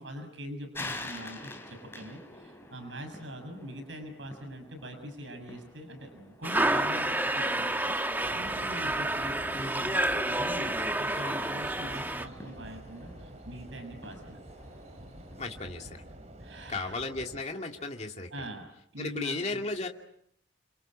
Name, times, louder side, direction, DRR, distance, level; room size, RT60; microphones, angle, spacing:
voice 1, 0.0-14.4 16.4-16.9 18.3-18.7 18.9-19.6, equal, 75° right, 6 dB, 6.5 m, -43 dB
sound 1, 0.7-15.7, left 2 dB, 15° left, 3.6 m, -48 dB
sound 2, 6.4-12.2, right 1 dB, 10° right, 1.3 m, -29 dB
sound 3, 8.2-17.4, right 1 dB, 35° right, 2.9 m, -48 dB
voice 2, 15.4-16.0 16.7-18.3 19.0-19.9, left 3 dB, 35° left, 2 dB, 2.5 m, -35 dB
29.5 x 25.5 x 7.5 m, 0.72 s
head